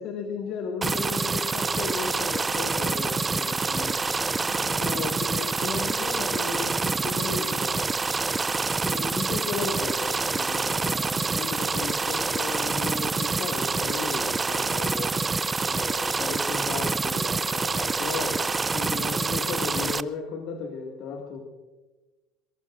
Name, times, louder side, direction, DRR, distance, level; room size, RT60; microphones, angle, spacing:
voice 1, 0.0-4.0 4.4-8.0 8.8-15.1 15.7-18.4 18.7-21.4, left 5 dB, 60° left, 2 dB, 2.1 m, -35 dB
sound 1, 0.8-20.0, right 4 dB, 25° right, 0.5 m, -27 dB
23.0 x 22.0 x 2.6 m, 1.2 s
hypercardioid pair, 70°, 0 cm